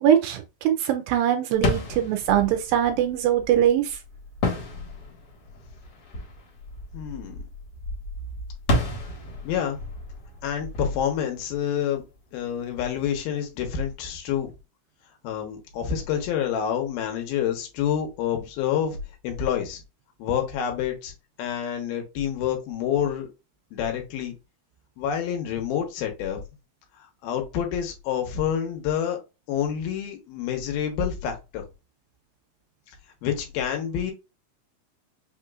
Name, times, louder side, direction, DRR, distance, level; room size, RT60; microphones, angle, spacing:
voice 1, 0.0-4.0, right 10 dB, 80° right, 2.2 m, -22 dB
sound 1, 1.5-12.1, left 1 dB, 55° left, 1.8 m, -32 dB
voice 2, 6.9-7.4 9.4-9.8 10.4-12.0 12.3-14.5 15.2-19.0 19.2-19.8 20.2-21.1 21.4-23.3 23.7-24.3 25.0-26.4 27.2-29.2 29.5-31.6 33.2-34.1, left 9 dB, 80° left, 2.8 m, -28 dB
5.9 x 2.9 x 2.4 m
omnidirectional pair, 4.4 m